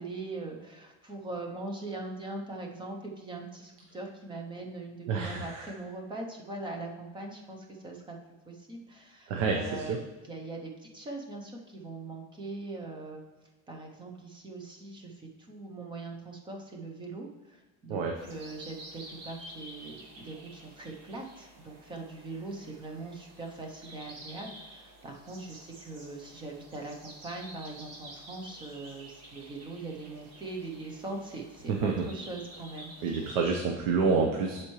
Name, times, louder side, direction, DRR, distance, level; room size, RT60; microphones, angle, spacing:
voice 1, 0.0-8.2 8.5-10.0 10.2-13.2 13.7-33.4, right 2 dB, 15° right, 2 dB, 0.6 m, -41 dB
voice 2, 5.1-5.7 9.3-10.0 17.9-18.2 31.7-32.1 33.0-34.6, right 4 dB, 90° right, 2 dB, 0.9 m, -28 dB
sound 1, 18.2-33.4, right 1 dB, 40° right, 1.4 m, -50 dB
11.5 x 4.4 x 3.1 m, 1.2 s
cardioid pair, 180°, 37 cm